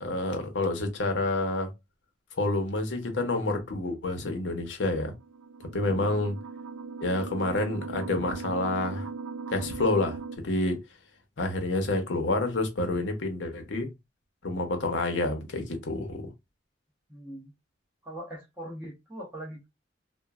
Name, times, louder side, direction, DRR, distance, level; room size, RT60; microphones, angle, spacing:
voice 1, 0.0-1.7 2.4-5.1 5.7-6.4 7.0-9.1 9.5-10.2 10.4-10.8 11.4-13.9 14.4-16.2, left 2 dB, 70° left, 0.7 m, -28 dB
sound 1, 5.1-10.4, right 4 dB, 85° right, 0.3 m, -39 dB
voice 2, 5.8-6.1 17.1-17.5 18.0-19.7, right 1 dB, 10° right, 0.9 m, -41 dB
3.0 x 2.2 x 2.3 m
head